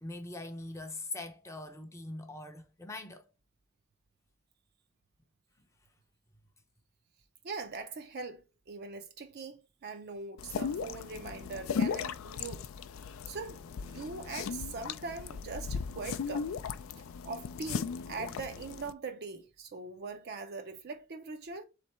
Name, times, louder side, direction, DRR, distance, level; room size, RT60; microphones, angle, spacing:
voice 1, 0.0-3.3, left 2 dB, 15° left, 0.5 m, -42 dB
voice 2, 7.4-12.6 13.0-16.5 17.2-21.6, right 4 dB, 50° right, 0.5 m, -42 dB
sound 1, 10.4-18.9, left 6 dB, 65° left, 0.4 m, -37 dB
3.7 x 3.3 x 4.2 m
head